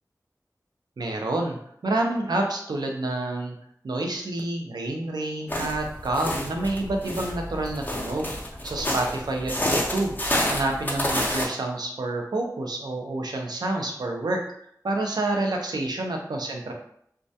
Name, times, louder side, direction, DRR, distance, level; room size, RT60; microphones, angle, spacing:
voice 1, 1.0-3.6 3.8-8.3 8.6-10.2 10.5-14.4 14.8-16.7, right 2 dB, 85° right, 2 dB, 0.4 m, -28 dB
sound 1, 5.5-11.5, left 1 dB, 25° left, 0.5 m, -29 dB
2.2 x 2.1 x 2.6 m, 0.69 s
wide cardioid pair, 60°, 7 cm